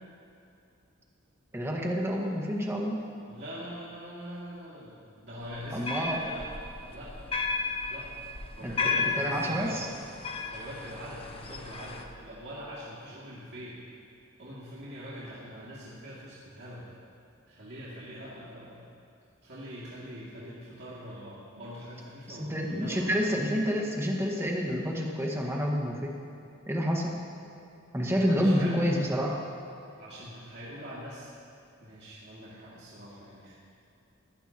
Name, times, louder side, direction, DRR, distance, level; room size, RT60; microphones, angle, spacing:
voice 1, 1.5-3.0 5.7-6.2 8.6-8.8 9.1-9.9 22.3-26.2 26.7-27.2 27.9-29.4, equal, 15° right, -1 dB, 1.7 m, -28 dB
voice 2, 3.3-7.3 7.9-8.1 8.6-9.8 10.5-13.8 14.4-16.9 17.5-18.8 19.4-23.1 28.1-28.7 30.0-31.3 31.8-33.5, equal, 55° right, -9 dB, 2.6 m, -43 dB
sound 1, 5.5-12.0, left 4 dB, 30° left, 0.8 m, -34 dB
19.5 x 16.0 x 3.0 m, 2.6 s
head